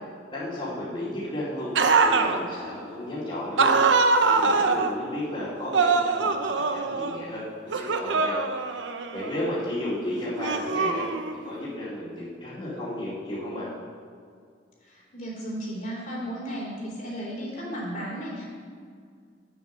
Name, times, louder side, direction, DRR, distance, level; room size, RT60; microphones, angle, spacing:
voice 1, 0.3-1.7 2.0-3.8 4.3-8.4 8.7-8.8 9.1-11.1 11.4-13.7, left 1 dB, 30° left, -11 dB, 2.7 m, -33 dB
sound 1, 1.8-2.4 3.6-4.9 5.7-7.2 7.7-9.5 10.4-11.5, right 4 dB, 90° right, 0.7 m, -23 dB
voice 2, 14.8-18.4, equal, 45° left, -4 dB, 3.2 m, -34 dB
9.5 x 7.2 x 6.3 m, 2.1 s
head